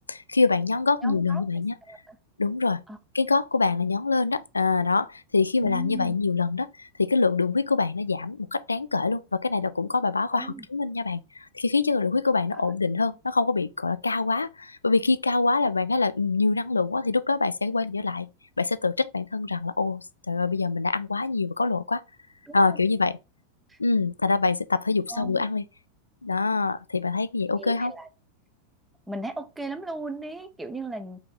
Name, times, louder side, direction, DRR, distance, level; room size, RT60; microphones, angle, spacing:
voice 1, 0.1-1.7 2.4-2.8 3.1-18.3 18.6-22.0 22.5-23.2 23.8-25.6 26.2-27.9, left 3 dB, 80° left, 0.3 m, -25 dB
voice 2, 1.0-1.4 1.9-2.2 2.9-3.0 5.6-6.1 10.3-10.7 12.5-12.7 22.5-22.8 23.7-23.8 25.1-25.5 27.5-28.1 29.1-31.2, right 2 dB, 10° right, 0.6 m, -37 dB
4.9 x 2.8 x 3.6 m
figure-of-eight pair, 90°, 0 cm